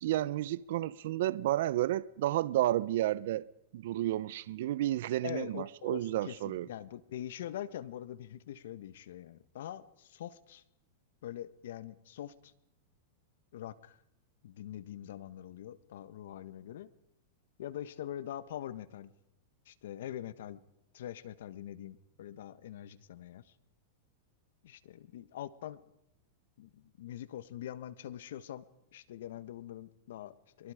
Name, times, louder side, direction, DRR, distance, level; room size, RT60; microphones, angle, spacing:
voice 1, 0.0-3.4 3.7-6.7, right 14 dB, 70° right, 0.9 m, -31 dB
voice 2, 5.2-10.6 11.2-12.5 13.5-14.0 14.4-16.9 17.6-19.1 19.7-20.6 20.9-23.5 24.6-25.8 26.6-28.6 28.9-30.7, left 11 dB, 75° left, 1.4 m, -43 dB
24.5 x 23.5 x 5.0 m
hypercardioid pair, 130°, 0 cm